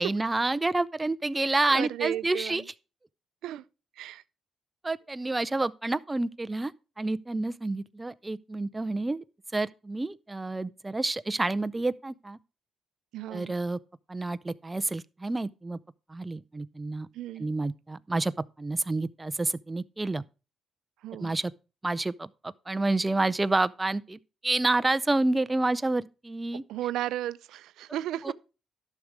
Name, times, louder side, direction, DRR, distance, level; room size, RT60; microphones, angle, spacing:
voice 1, 0.0-2.6 4.8-9.2 9.5-12.4 13.3-13.8 14.1-15.8 16.1-17.1 17.4-18.3 18.6-20.2 21.2-21.5 21.8-26.6 28.2-28.3, right 2 dB, 15° right, 0.5 m, -29 dB
voice 2, 1.7-2.6 3.4-3.6 4.0-4.2 7.3-7.4 13.1-13.5 17.1-17.5 21.0-21.3 26.7-28.3, right 13 dB, 85° right, 0.4 m, -34 dB
11.5 x 6.5 x 4.7 m
cardioid pair, 90°, 0 cm